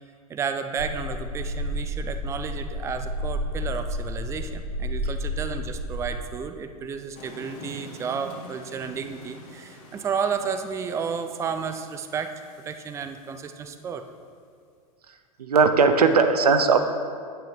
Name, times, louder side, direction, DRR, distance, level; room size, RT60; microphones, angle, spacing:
voice 1, 0.3-12.3 12.6-14.0, right 6 dB, 15° right, 8 dB, 0.4 m, -32 dB
sound 1, 0.8-6.1, equal, 85° left, 0.9 m, -31 dB
sound 2, 7.1-13.8, left 1 dB, 45° left, 1.5 m, -46 dB
voice 2, 15.4-16.9, right 5 dB, 85° right, 7 dB, 0.7 m, -18 dB
8.9 x 7.7 x 2.9 m, 2.1 s
hypercardioid pair, 105°, 19 cm